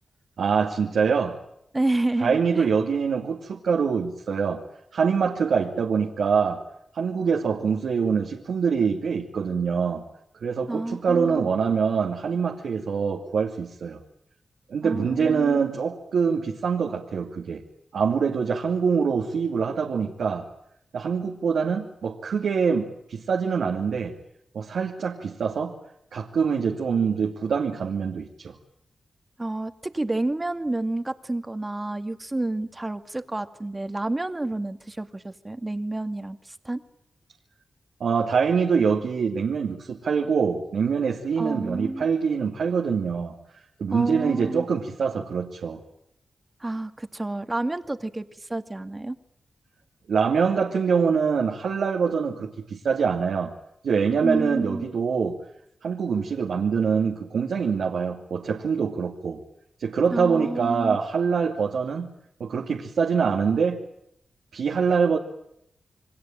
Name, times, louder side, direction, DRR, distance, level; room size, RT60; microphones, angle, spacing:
voice 1, 0.4-1.4 2.2-4.6 4.9-6.6 6.9-10.0 10.4-14.0 14.7-17.6 17.9-20.5 20.9-24.2 24.5-25.8 26.1-28.5 38.0-43.3 43.8-45.8 50.1-53.5 53.8-55.4 55.8-59.4 59.8-62.1 62.4-63.8 64.5-65.2, right 6 dB, 85° right, 1 dB, 2.6 m, -24 dB
voice 2, 1.7-2.7 10.7-11.5 14.8-15.6 29.4-36.8 41.4-42.1 43.9-44.7 46.6-49.2 54.2-54.9 60.1-61.0, right 2 dB, 25° right, 8 dB, 2.1 m, -29 dB
29.0 x 23.0 x 9.1 m, 0.76 s
cardioid pair, 60°, 0 cm